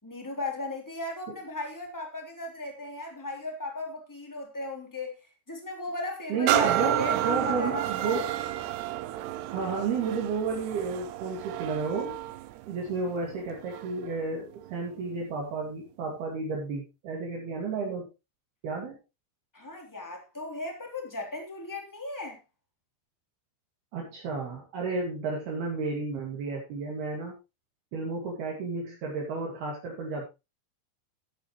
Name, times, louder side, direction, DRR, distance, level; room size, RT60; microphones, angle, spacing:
voice 1, 0.0-8.2 19.5-22.4, left 2 dB, 5° left, 1 dB, 2.3 m, -36 dB
voice 2, 6.3-8.3 9.5-12.2 12.7-18.1 18.6-19.0 23.9-27.3 27.9-30.2, right 4 dB, 60° right, -1 dB, 4.0 m, -32 dB
sound 1, 6.5-14.1 14.6-14.8, right 13 dB, 80° right, 2.4 m, -31 dB
13.0 x 11.0 x 3.2 m, 0.26 s
omnidirectional pair, 5.7 m